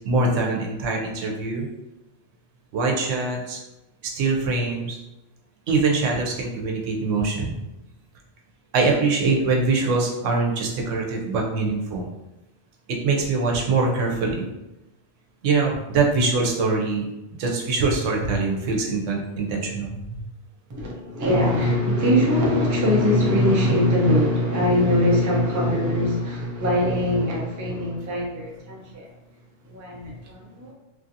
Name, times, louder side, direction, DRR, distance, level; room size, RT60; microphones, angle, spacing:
voice 1, 0.0-1.7 2.7-3.6 4.1-5.0 5.7-7.6 8.7-12.1 13.0-14.4 15.4-17.0 17.4-20.0, right 3 dB, 85° right, 0 dB, 1.0 m, -23 dB
voice 2, 20.7-29.1 29.7-30.7, left 1 dB, 30° right, -2 dB, 0.3 m, -22 dB
3.1 x 2.5 x 2.6 m, 0.96 s
omnidirectional pair, 1.3 m